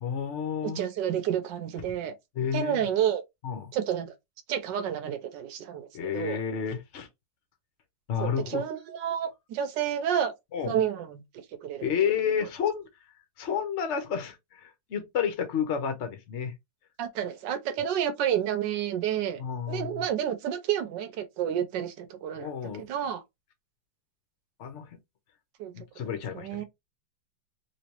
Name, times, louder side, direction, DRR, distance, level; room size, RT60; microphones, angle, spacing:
voice 1, 0.0-0.8 2.3-2.9 3.4-3.7 5.9-7.1 8.1-8.6 10.5-10.8 11.8-12.9 13.4-16.6 19.4-20.0 22.3-22.8 24.6-25.0 25.7-26.6, left 7 dB, 55° left, 0.8 m, -31 dB
voice 2, 0.7-2.1 2.5-3.2 3.7-4.1 4.5-6.4 8.2-10.3 10.6-11.2 11.6-11.8 17.0-19.4 19.7-22.5 22.8-23.2 25.6-25.7 26.3-26.6, right 9 dB, 70° right, 1.4 m, -30 dB
3.2 x 3.1 x 2.9 m
omnidirectional pair, 2.1 m